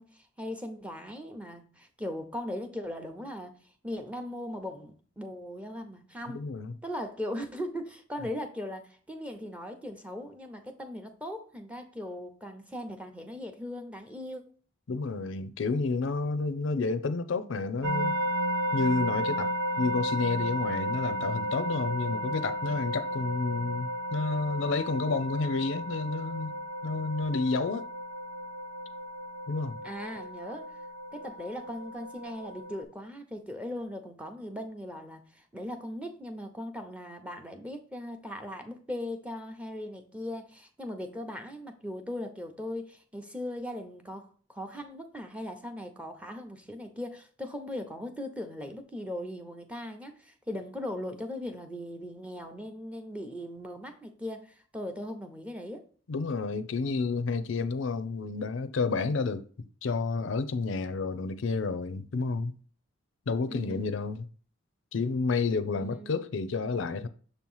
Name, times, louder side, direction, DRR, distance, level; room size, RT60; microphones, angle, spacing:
voice 1, 0.0-3.5 3.8-6.4 6.8-14.4 29.8-30.7 31.1-55.8 63.5-63.9 65.8-66.2, left 1 dB, 5° right, 0.7 m, -39 dB
voice 2, 6.3-6.7 14.9-18.2 18.7-19.5 19.8-26.6 26.8-27.9 29.5-29.8 56.1-59.4 59.8-62.5 63.3-64.3 64.9-67.1, left 4 dB, 70° left, 0.5 m, -30 dB
sound 1, 17.8-32.8, equal, 70° right, 0.7 m, -34 dB
6.8 x 3.0 x 5.4 m
head